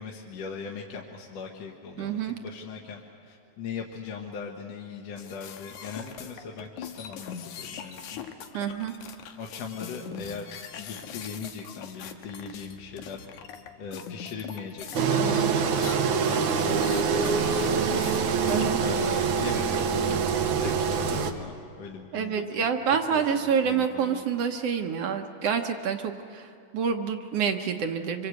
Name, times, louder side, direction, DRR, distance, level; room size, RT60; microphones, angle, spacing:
voice 1, 0.0-3.0 3.3-8.3 9.4-10.5 10.8-13.2 13.8-17.9 18.8-20.3 20.6-22.6 23.1-23.2 23.6-24.2, left 5 dB, 65° left, 0 dB, 2.4 m, -39 dB
voice 2, 2.0-2.4 8.5-8.9 18.5-18.8 22.1-28.3, right 7 dB, 65° right, 5 dB, 1.9 m, -27 dB
sound 1, 5.2-18.7, left 8 dB, 90° left, 2.7 m, -42 dB
Engine, 14.9-21.3, right 6 dB, 85° right, 2.6 m, -25 dB
25.5 x 25.0 x 8.2 m, 2.5 s
omnidirectional pair, 3.4 m